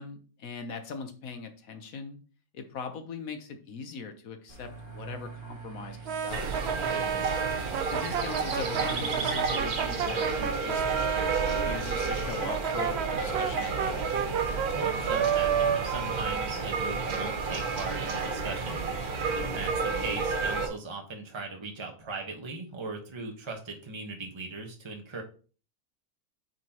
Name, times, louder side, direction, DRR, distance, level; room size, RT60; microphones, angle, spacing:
voice 1, 0.0-2.2 2.5-6.7 7.9-10.8 11.1-14.1, left 5 dB, 70° left, 7 dB, 1.4 m, -40 dB
sound 1, 4.5-9.6, right 5 dB, 35° right, 1.6 m, -44 dB
Brass instrument, 6.1-11.8 12.4-17.2, right 8 dB, 60° right, 0.7 m, -31 dB
sound 2, 6.3-20.7, right 4 dB, 80° right, 1.8 m, -31 dB
voice 2, 6.8-7.2 14.7-18.8 19.4-25.2, right 3 dB, 20° right, 2 dB, 1.2 m, -38 dB
9.2 x 4.2 x 3.0 m, 0.38 s
omnidirectional pair, 1.6 m